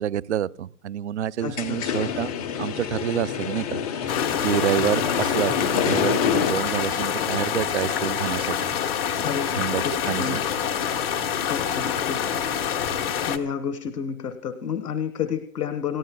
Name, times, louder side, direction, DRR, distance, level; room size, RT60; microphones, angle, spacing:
voice 1, 0.0-2.3 2.6-8.7 9.5-10.2, right 10 dB, 50° right, 0.5 m, -28 dB
voice 2, 1.4-1.8 9.2-10.4 11.4-12.5 13.0-16.0, left 7 dB, 75° left, 1.5 m, -31 dB
sound 1, 1.4-6.5, left 8 dB, 25° left, 0.9 m, -27 dB
sound 2, 4.1-13.4, left 8 dB, 40° left, 1.3 m, -26 dB
29.0 x 14.5 x 2.2 m
hypercardioid pair, 150°, 46 cm